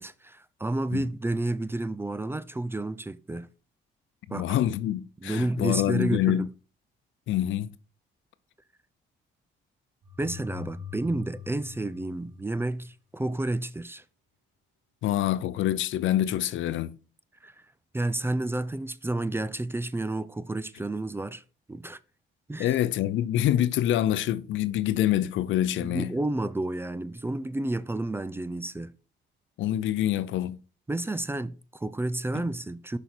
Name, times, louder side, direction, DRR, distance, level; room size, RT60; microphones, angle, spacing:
voice 1, 0.0-3.5 4.3-4.6 5.2-6.5 10.2-14.0 17.4-17.5 17.9-21.4 21.7-22.0 22.5-22.8 25.8-28.9 30.9-33.0, right 2 dB, 10° right, 0.4 m, -31 dB
voice 2, 4.3-6.5 7.3-7.7 15.0-17.0 22.6-26.1 29.6-30.6, left 12 dB, 75° left, 0.5 m, -26 dB
sound 1, 10.0-12.9, left 8 dB, 65° right, 3.3 m, -43 dB
6.2 x 5.4 x 4.4 m
cardioid pair, 90°, 20 cm